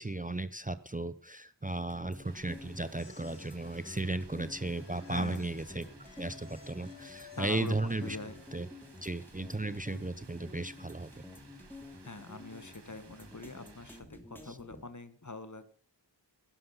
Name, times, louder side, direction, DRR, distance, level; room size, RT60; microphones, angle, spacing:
voice 1, 0.0-5.8 6.2-8.2 8.5-8.7 9.0-11.1 14.5-14.6, right 2 dB, 20° right, 13 dB, 0.7 m, -35 dB
sound 1, 1.9-14.8, left 2 dB, 5° left, 2.7 m, -51 dB
Rain, 2.2-14.0, right 4 dB, 70° right, 1.7 m, -59 dB
sound 2, 2.8-8.7, left 6 dB, 85° left, 1.8 m, -57 dB
voice 2, 5.0-5.5 7.4-8.4 12.0-15.7, left 3 dB, 40° left, 11 dB, 1.6 m, -43 dB
11.5 x 11.5 x 5.7 m, 0.41 s
wide cardioid pair, 45°, 43 cm